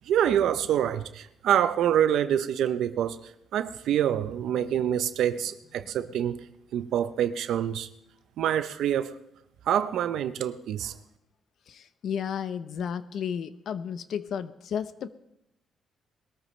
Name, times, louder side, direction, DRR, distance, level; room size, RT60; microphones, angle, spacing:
voice 1, 0.1-6.4 6.7-7.9 8.4-9.2 9.7-10.9, right 10 dB, 80° right, 0.8 m, -26 dB
voice 2, 11.7-15.1, left 8 dB, 65° left, 0.8 m, -33 dB
21.0 x 13.5 x 3.3 m
cardioid pair, 90°, 0 cm